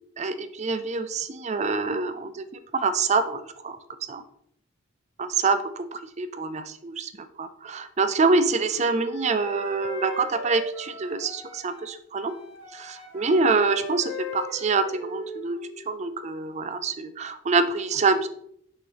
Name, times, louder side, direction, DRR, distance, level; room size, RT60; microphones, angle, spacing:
voice 1, 0.2-2.5 2.7-3.8 4.1-4.2 5.2-7.1 7.4-12.3 12.7-15.6 15.9-18.3, right 4 dB, 30° right, 10 dB, 0.4 m, -26 dB
Wind instrument woodwind instrument, 8.4-11.9 12.2-15.7, equal, 55° left, 2.6 m, -39 dB
6.7 x 5.6 x 3.4 m, 0.70 s
head